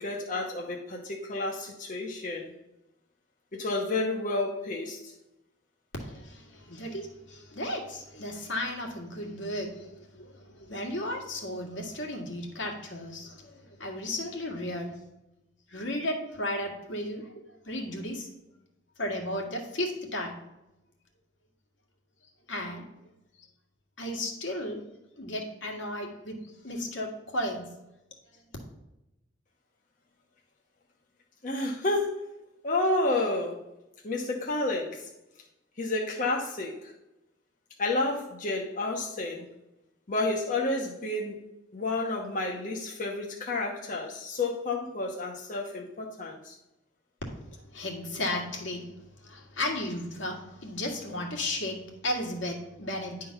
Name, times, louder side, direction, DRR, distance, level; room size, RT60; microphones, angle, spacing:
voice 1, 0.0-2.5 3.5-5.1 31.4-32.2 32.6-33.6 34.0-35.1 35.8-36.9 37.8-39.5 40.1-41.4 41.7-46.6, left 2 dB, 45° left, -1 dB, 0.9 m, -30 dB
voice 2, 6.0-15.0 15.7-17.3 17.7-18.3 19.0-20.3 22.5-22.8 24.0-24.8 25.2-26.4 26.6-27.7 47.7-48.9 49.2-53.3, left 1 dB, 80° left, 0 dB, 1.8 m, -34 dB
10.0 x 3.7 x 5.8 m, 0.94 s
head